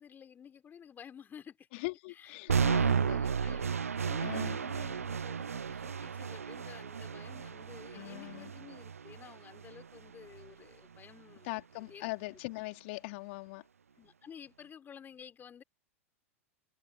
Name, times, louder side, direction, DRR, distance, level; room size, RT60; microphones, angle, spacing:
voice 1, 0.0-1.7 2.1-3.8 4.0-11.5 11.8-12.0 14.0-15.6, left 8 dB, 25° left, 4.0 m, -52 dB
voice 2, 1.7-3.2 4.2-4.6 7.9-8.5 11.4-13.7, left 26 dB, 55° left, 2.7 m, -41 dB
sound 1, 2.5-10.5, right 6 dB, 85° right, 0.6 m, -33 dB
figure-of-eight pair, 90°, 8 cm